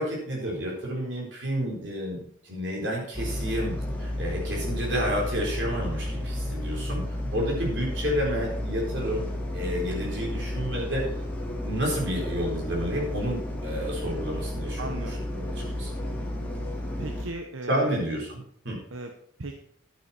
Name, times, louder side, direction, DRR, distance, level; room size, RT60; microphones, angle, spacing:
voice 1, 0.0-7.0 7.3-9.2 9.5-11.0 11.5-16.0 17.7-18.8, equal, 60° right, -2 dB, 4.3 m, -30 dB
sound 1, 3.1-17.2, left 1 dB, 10° left, 2.7 m, -32 dB
voice 2, 14.8-15.2 17.0-17.9 18.9-19.1 19.4-19.6, right 2 dB, 85° right, 4 dB, 1.0 m, -36 dB
11.5 x 8.7 x 4.4 m, 0.65 s
head